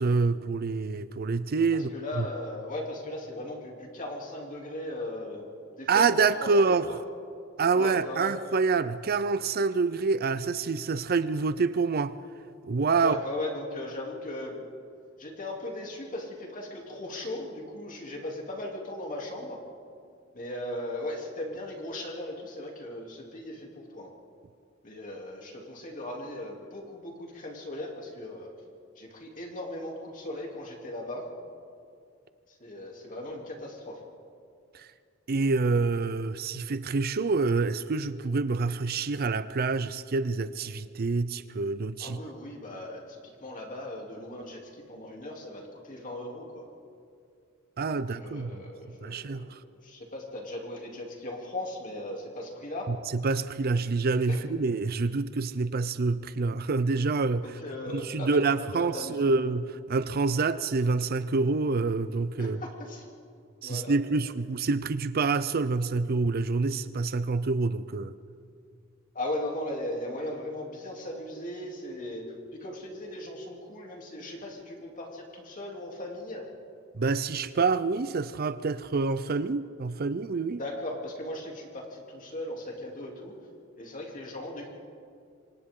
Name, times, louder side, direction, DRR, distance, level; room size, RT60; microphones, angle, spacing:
voice 1, 0.0-2.3 5.9-6.9 7.6-12.2 12.6-13.2 34.7-34.9 35.3-42.2 47.8-48.6 49.0-49.6 52.9-57.5 57.9-62.6 63.6-68.1 77.0-80.6, right 4 dB, 50° right, 0.5 m, -27 dB
voice 2, 1.7-5.5 5.8-7.0 7.7-8.3 13.0-14.7 15.2-19.6 20.3-24.1 24.8-28.5 29.0-31.2 32.5-34.0 42.0-46.7 47.9-52.9 54.2-54.4 57.4-58.4 58.8-59.3 62.4-63.0 63.6-63.9 69.1-76.5 80.5-83.4 83.8-84.7, left 1 dB, 40° left, 3.1 m, -38 dB
27.5 x 25.0 x 3.8 m
head